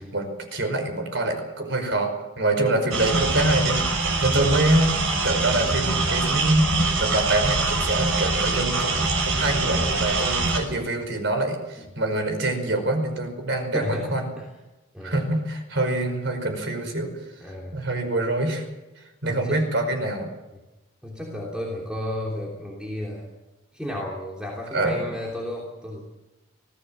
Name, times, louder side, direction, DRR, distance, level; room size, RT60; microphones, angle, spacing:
voice 1, 0.0-2.1 2.4-14.3 15.0-17.1 17.7-18.6 19.2-20.3 24.7-25.0, right 2 dB, 60° right, 5 dB, 5.2 m, -25 dB
sound 1, 2.9-10.6, right 3 dB, 85° right, 5.5 m, -24 dB
voice 2, 13.7-14.5 14.9-15.2 17.4-17.8 19.2-19.6 21.0-23.3 23.7-26.0, left 1 dB, 5° right, -3 dB, 3.1 m, -33 dB
25.0 x 17.0 x 7.5 m, 1.1 s
head